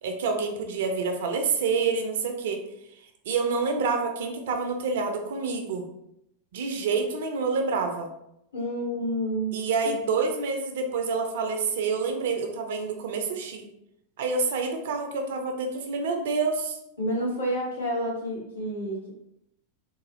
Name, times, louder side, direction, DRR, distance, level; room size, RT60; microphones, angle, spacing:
voice 1, 0.0-2.6 3.0-5.8 6.5-8.1 9.5-13.7 14.2-16.8, right 4 dB, 55° right, 5 dB, 0.5 m, -28 dB
voice 2, 8.5-9.6 17.0-19.1, equal, 75° left, -5 dB, 1.3 m, -29 dB
3.8 x 2.5 x 3.0 m, 0.81 s
figure-of-eight pair, 90°, 0 cm